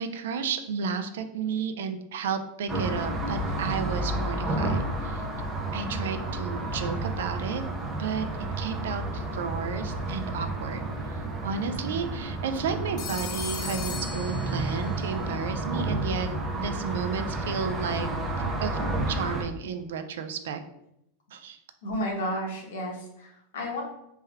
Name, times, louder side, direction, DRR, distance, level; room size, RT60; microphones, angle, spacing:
voice 1, 0.0-5.2 5.7-7.6 8.0-8.3 8.6-16.3 16.6-18.1 18.6-18.8 19.1-20.6 21.3-21.6, right 6 dB, 85° right, 8 dB, 0.4 m, -32 dB
sound 1, 2.7-19.4, right 2 dB, 15° right, 0.5 m, -31 dB
Telephone, 13.0-15.0, left 5 dB, 35° left, 0.5 m, -38 dB
voice 2, 21.8-23.8, equal, 90° left, -1 dB, 1.2 m, -32 dB
3.4 x 2.2 x 3.3 m, 0.79 s
supercardioid pair, 165°, 0 cm